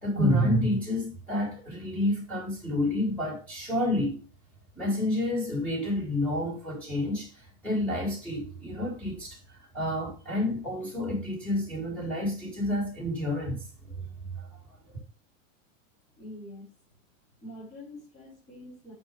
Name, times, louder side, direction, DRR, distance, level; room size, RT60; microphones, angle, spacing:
voice 1, 0.0-4.2 4.7-13.9 14.3-14.5 14.8-15.0, left 1 dB, 5° left, 2.8 m, -29 dB
voice 2, 16.2-16.7 17.4-18.9, left 1 dB, 25° left, 5.0 m, -45 dB
8.2 x 5.0 x 4.8 m
supercardioid pair, 175°, 39 cm